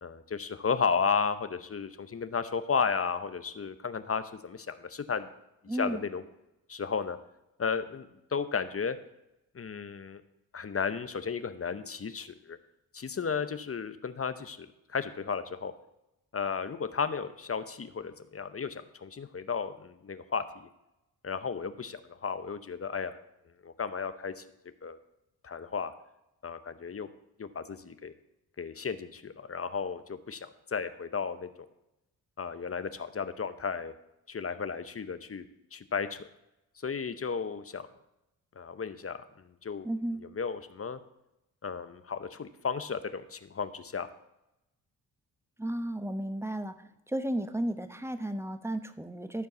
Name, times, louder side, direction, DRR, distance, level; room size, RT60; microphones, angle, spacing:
voice 1, 0.0-5.3 5.7-6.2 6.7-7.2 7.6-9.0 9.5-10.2 10.5-12.6 12.9-15.7 16.3-20.7 21.2-23.2 23.6-24.4 24.8-25.0 25.4-25.9 26.4-27.1 27.4-28.1 28.6-31.5 32.4-33.9 34.3-35.4 35.7-36.2 36.8-37.8 38.6-39.9 40.2-41.0 41.6-44.1, left 5 dB, 35° left, 12 dB, 0.8 m, -34 dB
voice 2, 5.7-6.0 39.8-40.2 45.6-46.7 47.1-49.5, right 1 dB, 5° right, 10 dB, 0.9 m, -33 dB
13.5 x 4.6 x 6.8 m, 0.88 s
cardioid pair, 60°, 41 cm